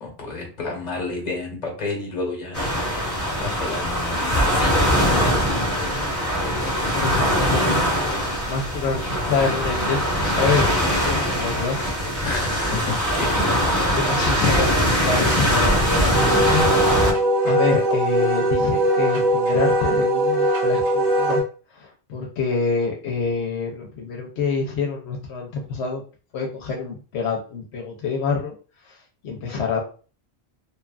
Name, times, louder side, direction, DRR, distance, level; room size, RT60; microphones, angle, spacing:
voice 1, 0.0-2.7 3.4-5.4 12.2-14.0, left 3 dB, 40° left, -1 dB, 1.0 m, -30 dB
sound 1, 2.5-17.1, equal, 15° left, 0.8 m, -22 dB
voice 2, 6.9-10.8 11.0-11.8 13.9-16.7 17.4-21.4 21.7-26.0 26.3-28.5 28.8-29.0 29.2-29.8, left 4 dB, 80° left, 0 dB, 0.9 m, -26 dB
Wind instrument woodwind instrument, 16.1-21.4, right 1 dB, 55° right, 1.1 m, -20 dB
2.8 x 2.3 x 2.3 m, 0.37 s
omnidirectional pair, 1.1 m